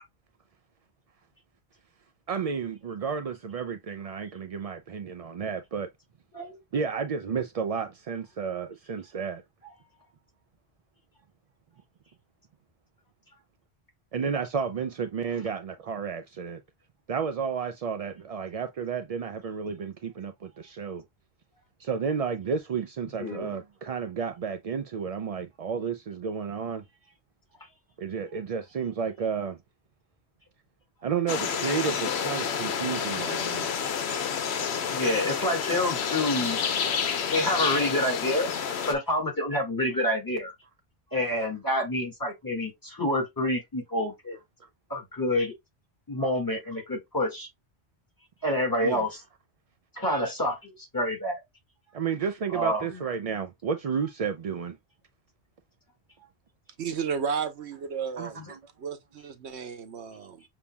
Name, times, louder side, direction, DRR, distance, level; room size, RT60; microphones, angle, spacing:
voice 1, 2.3-5.9 6.7-9.4 14.1-16.6 17.1-21.0 21.8-26.8 28.0-29.6 31.0-33.7 38.6-38.8 48.8-49.1 51.9-54.8 58.2-58.6, right 6 dB, 60° right, 0.4 m, -32 dB
voice 2, 23.2-23.5 34.9-36.6 37.3-38.5 38.9-40.5 41.1-44.4 44.9-45.5 46.1-47.5 48.4-49.1 49.9-51.4 52.5-52.9 58.4-58.5, left 1 dB, 20° left, 1.9 m, -28 dB
sound 1, 31.3-38.9, left 7 dB, 75° left, 0.9 m, -29 dB
voice 3, 56.8-58.5 58.8-60.4, right 6 dB, 90° right, 1.1 m, -33 dB
7.0 x 2.8 x 2.3 m
omnidirectional pair, 1.1 m